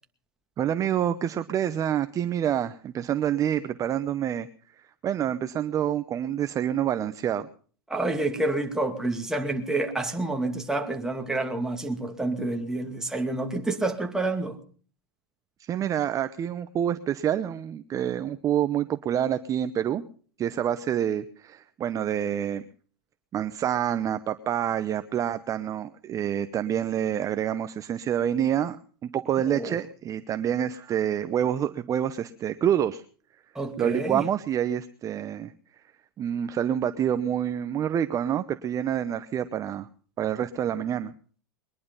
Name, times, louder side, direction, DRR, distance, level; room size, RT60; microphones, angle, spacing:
voice 1, 0.6-7.5 15.6-20.0 20.4-22.6 23.3-28.8 29.0-33.0 33.8-35.9 36.2-39.9 40.2-41.1, right 10 dB, 25° right, 0.8 m, -27 dB
voice 2, 7.9-14.6 29.4-29.8 33.5-34.2, right 2 dB, 5° right, 2.3 m, -28 dB
22.0 x 11.0 x 5.5 m
hypercardioid pair, 120°, 12 cm